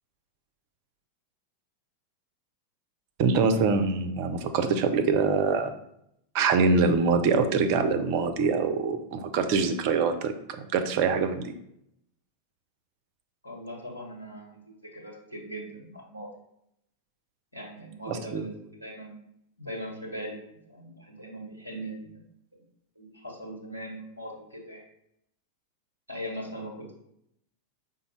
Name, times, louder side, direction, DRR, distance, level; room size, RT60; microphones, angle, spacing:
voice 1, 3.2-5.7 6.3-10.3 10.7-11.5 18.1-18.5, right 4 dB, 45° right, 7 dB, 0.4 m, -24 dB
voice 2, 13.4-16.3 17.5-19.2 19.6-22.2 23.0-24.8 26.1-26.9, equal, 85° left, -3 dB, 1.0 m, -40 dB
5.0 x 2.0 x 3.1 m, 0.76 s
figure-of-eight pair, 90°, 0 cm